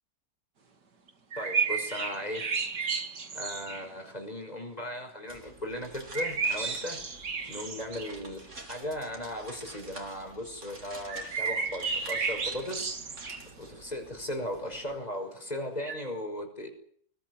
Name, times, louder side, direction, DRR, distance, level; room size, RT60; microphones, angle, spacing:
sound 1, 1.1-3.9 6.1-8.2 11.1-13.5 15.8-16.0, right 5 dB, 90° right, 3.0 m, -32 dB
voice 1, 1.4-2.5 3.3-7.0 7.5-12.9 13.6-16.7, left 1 dB, 25° left, 4 dB, 5.8 m, -37 dB
sound 2, 5.3-15.0, right 2 dB, 45° right, 4.1 m, -49 dB
21.5 x 20.5 x 9.6 m, 0.62 s
omnidirectional pair, 1.8 m